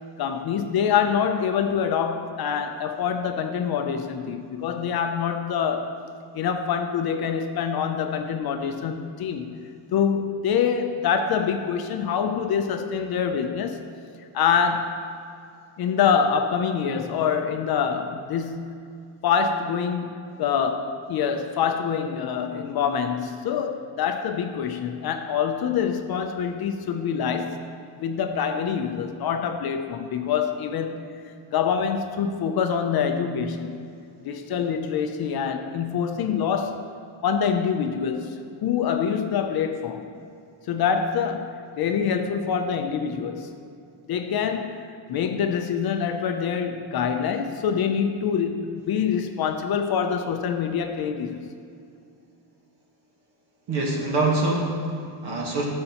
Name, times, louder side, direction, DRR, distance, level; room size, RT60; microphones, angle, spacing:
voice 1, 0.2-5.9 6.3-13.8 14.3-14.9 15.8-18.8 19.2-27.6 28.0-31.0 31.5-33.9 34.2-36.8 37.2-38.4 38.6-40.0 40.7-43.5 44.1-51.5, left 7 dB, 50° left, 7 dB, 0.5 m, -25 dB
voice 2, 53.7-55.6, right 2 dB, 50° right, -1 dB, 1.6 m, -25 dB
14.0 x 6.7 x 2.9 m, 2.4 s
cardioid pair, 175°, 49 cm